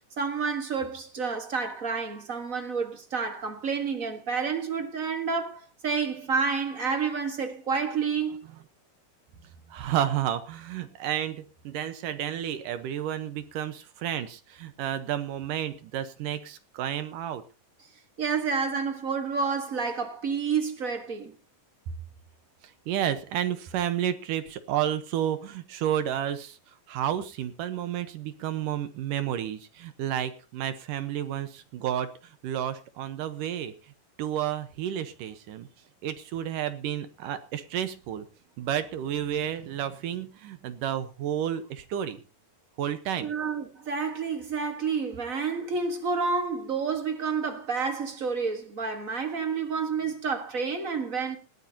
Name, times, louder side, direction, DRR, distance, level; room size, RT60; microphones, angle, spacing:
voice 1, 0.2-8.4 18.2-21.3 43.2-51.4, right 5 dB, 45° right, 1.0 m, -29 dB
voice 2, 9.7-17.4 22.9-26.6 26.9-32.1 32.4-33.7 34.2-35.7 36.0-38.2 38.6-42.2 42.8-43.3, right 10 dB, 75° right, 2.7 m, -31 dB
19.5 x 14.5 x 2.9 m
omnidirectional pair, 3.9 m